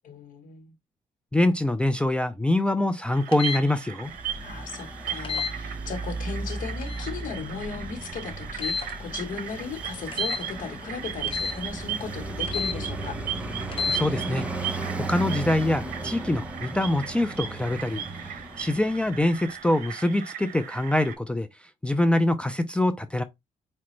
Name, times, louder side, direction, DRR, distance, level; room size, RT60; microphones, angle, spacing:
voice 1, 0.0-0.8 4.4-13.2, left 5 dB, 70° left, 1.0 m, -37 dB
voice 2, 1.3-4.1 13.9-14.5 15.0-18.0 18.6-21.5 21.8-23.2, left 1 dB, 5° left, 0.4 m, -24 dB
sound 1, 3.1-21.2, right 10 dB, 80° right, 0.7 m, -37 dB
sound 2, 3.3-3.6 5.2-5.5 6.8-7.1 8.6-8.9 10.1-10.4 11.3-11.6 12.5-12.8 13.7-14.0, left 5 dB, 40° left, 0.8 m, -30 dB
Traffic noise roadway noise, 4.0-19.5, right 2 dB, 10° right, 0.7 m, -36 dB
4.9 x 2.2 x 3.0 m
cardioid pair, 90°, 14 cm